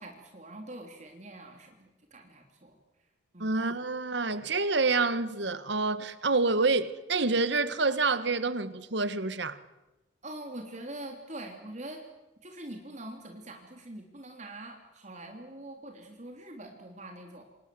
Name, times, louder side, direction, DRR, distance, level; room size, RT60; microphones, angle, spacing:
voice 1, 0.0-2.8 3.3-3.6 10.2-12.0 12.4-17.4, right 1 dB, 35° right, 3.2 m, -44 dB
voice 2, 3.4-9.6, right 3 dB, 60° right, 1.5 m, -27 dB
28.5 x 26.5 x 7.8 m
head